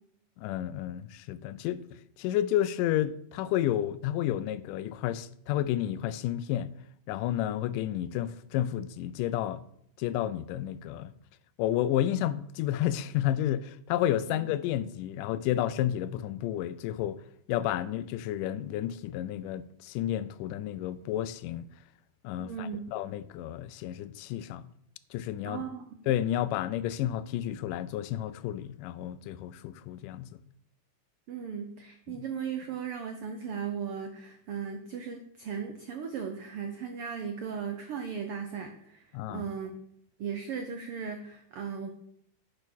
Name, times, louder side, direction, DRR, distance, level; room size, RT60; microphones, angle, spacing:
voice 1, 0.4-1.8 2.2-6.7 7.1-9.6 10.0-11.1 11.6-17.2 17.5-21.7 22.2-24.7 25.1-25.6 26.1-30.4 32.1-32.2 39.1-39.5, left 12 dB, 85° left, 2.2 m, -31 dB
voice 2, 22.4-22.8 25.4-25.8 31.3-39.0 39.3-39.8 40.2-41.9, right 7 dB, 85° right, 1.2 m, -37 dB
9.6 x 5.9 x 6.2 m
omnidirectional pair, 3.7 m